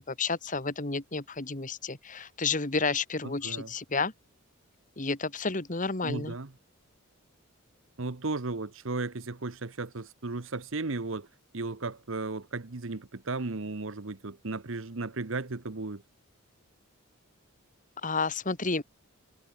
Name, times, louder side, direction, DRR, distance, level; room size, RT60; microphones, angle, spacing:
voice 1, 0.0-4.1 5.0-6.3 18.0-18.8, left 4 dB, 35° left, 1.7 m, -31 dB
voice 2, 3.2-3.7 6.0-6.5 8.0-11.3 11.5-16.0, right 3 dB, 60° right, 1.0 m, -35 dB
head